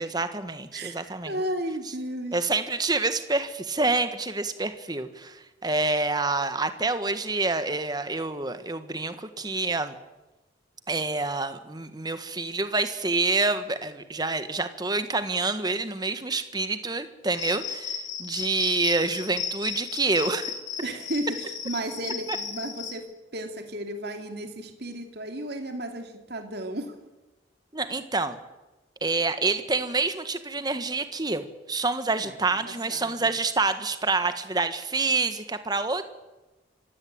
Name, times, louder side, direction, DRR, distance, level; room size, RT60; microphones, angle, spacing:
voice 1, 0.0-1.3 2.3-10.0 10.9-20.5 22.3-22.4 27.7-28.4 29.0-36.1, right 3 dB, 20° right, 10 dB, 1.5 m, -27 dB
voice 2, 0.7-2.4 20.8-23.0 23.3-27.0 32.2-32.3 32.6-33.3, right 1 dB, 55° right, 5 dB, 2.5 m, -34 dB
Cricket, 17.3-22.9, left 7 dB, 70° left, 6.8 m, -35 dB
25.5 x 16.0 x 8.9 m, 1.1 s
head